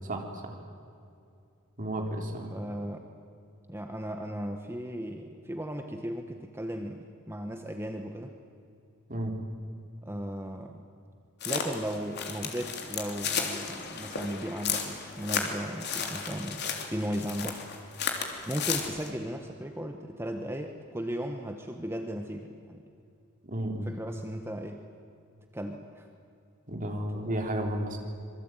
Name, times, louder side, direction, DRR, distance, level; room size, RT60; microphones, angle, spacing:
voice 1, 0.0-0.6 1.8-2.5 9.1-9.3 23.4-23.9 26.7-28.0, right 1 dB, 35° right, 2 dB, 3.7 m, -32 dB
voice 2, 2.5-3.1 3.7-8.3 10.0-10.8 11.4-17.6 18.5-22.8 23.8-24.8 25.5-26.1, equal, 10° right, 4 dB, 1.3 m, -36 dB
sound 1, 11.4-19.1, left 6 dB, 50° left, 3.3 m, -34 dB
26.5 x 23.5 x 9.1 m, 2.5 s
head